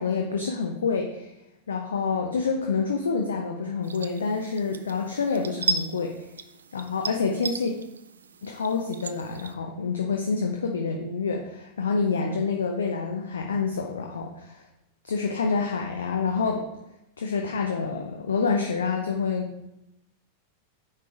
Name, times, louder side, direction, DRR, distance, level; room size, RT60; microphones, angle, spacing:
voice 1, 0.0-1.3 1.7-6.1 6.7-7.7 8.4-14.6 15.0-16.6 17.2-19.5, left 5 dB, 70° left, 2 dB, 0.7 m, -27 dB
sound 1, 3.8-9.5, right 4 dB, 70° right, 0.4 m, -35 dB
9.3 x 3.3 x 4.5 m, 0.88 s
figure-of-eight pair, 90°, 0 cm